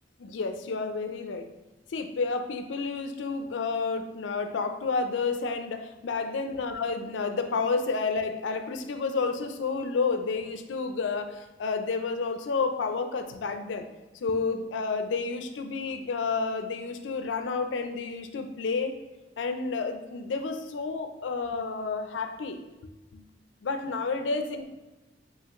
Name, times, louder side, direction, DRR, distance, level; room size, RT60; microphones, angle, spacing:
voice 1, 0.2-1.5 1.9-13.9 14.2-18.9 19.4-23.3 23.6-24.7, left 4 dB, 80° left, 7 dB, 0.4 m, -30 dB
5.6 x 2.8 x 2.9 m, 1.1 s
head